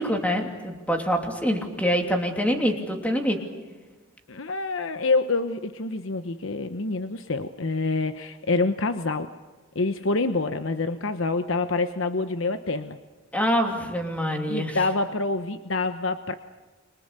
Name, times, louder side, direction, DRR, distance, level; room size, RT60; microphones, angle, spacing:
voice 1, 0.0-3.4 13.3-14.8, equal, 5° left, 3 dB, 2.9 m, -25 dB
voice 2, 4.3-9.3 9.7-13.0 14.5-16.3, left 3 dB, 65° left, 9 dB, 1.0 m, -26 dB
30.0 x 23.5 x 6.8 m, 1.3 s
head